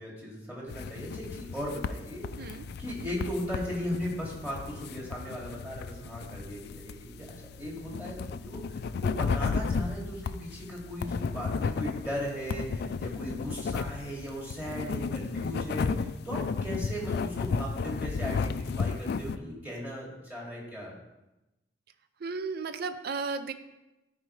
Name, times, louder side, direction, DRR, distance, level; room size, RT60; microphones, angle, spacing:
voice 1, 0.0-7.3 7.6-21.0, equal, 10° right, -5 dB, 2.3 m, -37 dB
sound 1, 0.7-19.4, left 5 dB, 60° left, 0.3 m, -34 dB
voice 2, 22.2-23.5, right 4 dB, 60° right, 10 dB, 0.5 m, -34 dB
13.0 x 4.8 x 3.2 m, 0.97 s
head